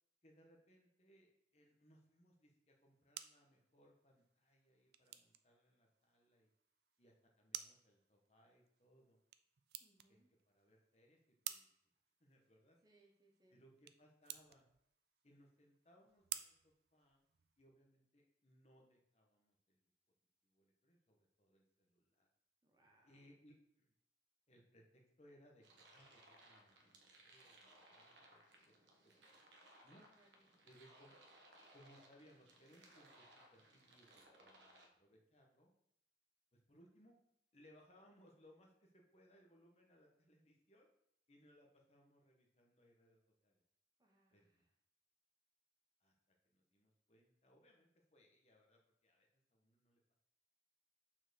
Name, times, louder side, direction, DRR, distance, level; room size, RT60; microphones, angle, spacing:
voice 1, 0.2-6.5 7.0-9.2 10.1-10.2 10.5-11.2 11.4-11.7 12.2-12.8 13.5-14.7 15.2-17.2 17.6-19.8 20.4-22.3 23.0-23.9 24.5-28.4 29.0-29.3 29.8-30.0 30.7-31.2 31.7-35.7 36.5-37.2 37.5-40.9 41.3-43.6 44.3-44.7 46.0-46.1 46.4-50.0, equal, 35° left, 0 dB, 1.4 m, -69 dB
sound 1, 2.7-17.6, right 12 dB, 60° right, 0.4 m, -54 dB
voice 2, 9.8-10.3 12.8-13.6 22.6-23.2 29.9-30.5 44.0-44.6, right 2 dB, 20° right, -1 dB, 1.2 m, -73 dB
sound 2, 25.6-34.9, right 1 dB, 85° right, 1.4 m, -65 dB
6.0 x 4.6 x 6.4 m, 0.76 s
head